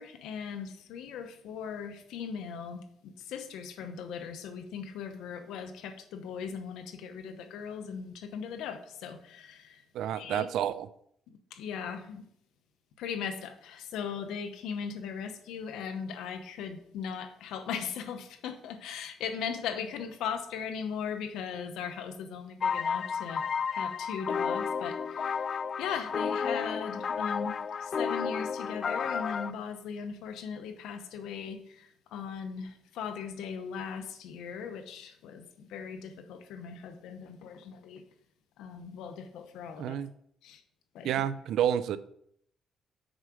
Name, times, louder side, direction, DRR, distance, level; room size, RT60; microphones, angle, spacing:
voice 1, 0.0-9.8 10.1-10.5 11.5-12.2 13.0-23.4 23.7-25.3 25.8-38.0 38.6-40.0 40.4-40.6 40.9-41.1, left 7 dB, 90° left, 8 dB, 0.9 m, -38 dB
voice 2, 9.9-10.9 39.8-40.1 41.0-42.0, right 10 dB, 80° right, 14 dB, 0.5 m, -29 dB
sound 1, 22.6-29.5, left 6 dB, 50° left, 0.3 m, -32 dB
6.3 x 4.8 x 6.3 m, 0.68 s
cardioid pair, 90°, 0 cm